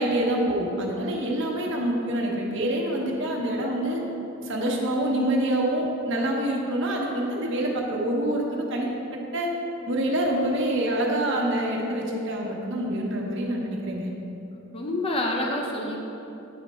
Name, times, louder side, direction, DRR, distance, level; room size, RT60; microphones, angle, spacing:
voice 1, 0.0-4.0 4.4-9.5 9.9-14.1, right 1 dB, 65° right, -1 dB, 1.1 m, -26 dB
voice 2, 14.7-16.0, left 1 dB, 30° left, 0 dB, 0.6 m, -27 dB
9.5 x 4.3 x 4.2 m, 2.9 s
head